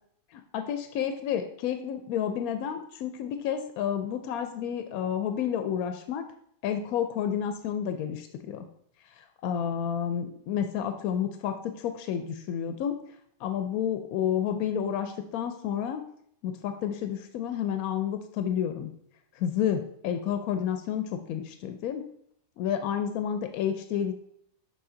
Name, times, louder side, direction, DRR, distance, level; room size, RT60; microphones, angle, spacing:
voice 1, 0.3-6.2 6.6-8.7 9.1-13.0 13.4-16.0 16.4-18.9 19.4-22.0 22.6-24.1, left 9 dB, 90° left, 8 dB, 1.0 m, -30 dB
7.0 x 5.2 x 3.7 m, 0.68 s
omnidirectional pair, 1.5 m